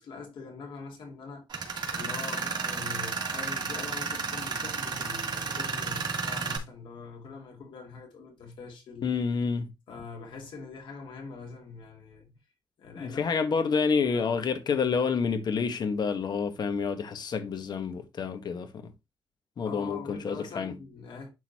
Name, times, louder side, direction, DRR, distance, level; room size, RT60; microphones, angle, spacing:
voice 1, 0.0-1.4 1.9-9.1 9.9-12.3 12.8-13.2 14.0-14.4 14.7-15.0 19.6-21.3, left 4 dB, 90° left, 2.9 m, -43 dB
Tools, 1.5-6.6, right 5 dB, 60° right, 2.5 m, -32 dB
voice 2, 9.0-9.7 13.0-18.7 19.6-20.7, left 5 dB, 60° left, 1.2 m, -28 dB
11.0 x 3.9 x 2.9 m
wide cardioid pair, 125°, 8 cm